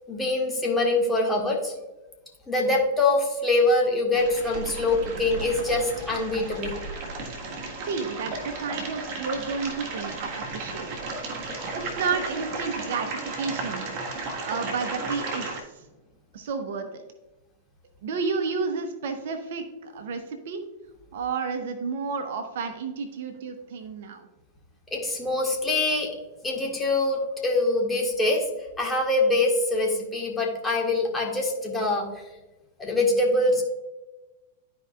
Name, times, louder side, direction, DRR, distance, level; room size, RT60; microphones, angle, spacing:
voice 1, 0.1-1.7 2.5-6.8 24.9-26.1 26.4-28.4 28.8-32.1 32.8-33.6, left 2 dB, 10° left, -1 dB, 1.7 m, -24 dB
sound 1, 4.1-15.6, right 3 dB, 40° right, 1.6 m, -34 dB
voice 2, 7.9-10.9 11.7-13.8 14.4-15.8 16.3-17.0 18.0-20.6 21.1-24.3, right 5 dB, 60° right, 6 dB, 0.9 m, -31 dB
12.5 x 4.7 x 2.4 m, 1.1 s
figure-of-eight pair, 95°, 0 cm